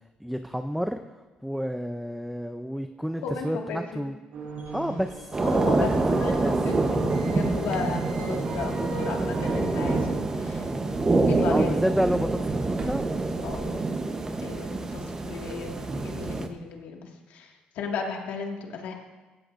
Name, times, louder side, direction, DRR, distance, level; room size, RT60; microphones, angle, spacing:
voice 1, 0.2-1.0 1.4-4.2 4.7-5.4 5.7-6.5 11.5-13.7, equal, ahead, 7 dB, 0.5 m, -30 dB
voice 2, 3.2-4.1 5.4-5.9 6.2-10.7 11.3-11.8 13.4-13.8 14.4-15.7 16.0-18.9, left 5 dB, 90° left, 1 dB, 2.0 m, -35 dB
sound 1, 4.3-10.1, right 4 dB, 70° right, 5.3 m, -38 dB
sound 2, 5.3-16.5, right 3 dB, 25° right, 1.0 m, -26 dB
sound 3, 10.4-13.3 13.8-14.2 14.4-14.6 15.2-15.3 15.9-16.5, right 2 dB, 40° right, 2.8 m, -41 dB
16.5 x 16.0 x 2.6 m, 1.2 s
cardioid pair, 130°, 3 cm